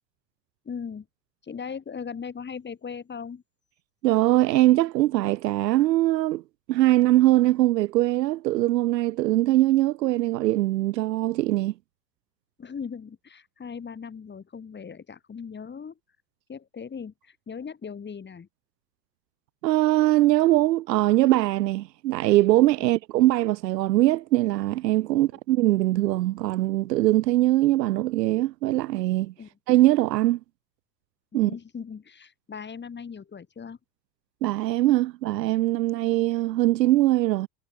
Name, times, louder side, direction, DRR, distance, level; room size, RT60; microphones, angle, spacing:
voice 1, 0.6-1.1 1.4-3.4 12.6-16.0 16.5-18.5 22.8-22.9 25.1-25.3 29.4-29.5 31.3-33.8, left 6 dB, 20° left, 4.2 m, -38 dB
voice 2, 4.0-6.4 6.7-11.7 19.6-29.3 29.7-30.4 31.3-31.5 34.4-37.5, right 16 dB, 85° right, 0.6 m, -22 dB
hypercardioid pair, 95°, 48 cm